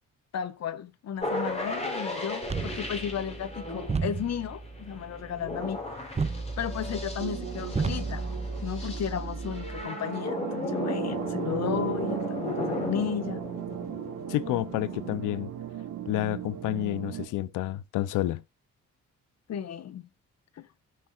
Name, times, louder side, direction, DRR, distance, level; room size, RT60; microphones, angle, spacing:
voice 1, 0.3-5.8 6.6-8.3 8.6-13.4 19.5-20.1 20.6-20.7, left 9 dB, 60° left, 1.2 m, -34 dB
sound 1, 1.2-15.2, left 1 dB, 20° left, 4.0 m, -36 dB
sound 2, 2.4-9.8, right 4 dB, 20° right, 0.8 m, -34 dB
sound 3, 7.2-17.3, right 9 dB, 75° right, 2.3 m, -36 dB
voice 2, 14.3-15.5 16.1-18.4, left 16 dB, 90° left, 0.7 m, -29 dB
16.0 x 6.5 x 2.4 m
cardioid pair, 90°, 30 cm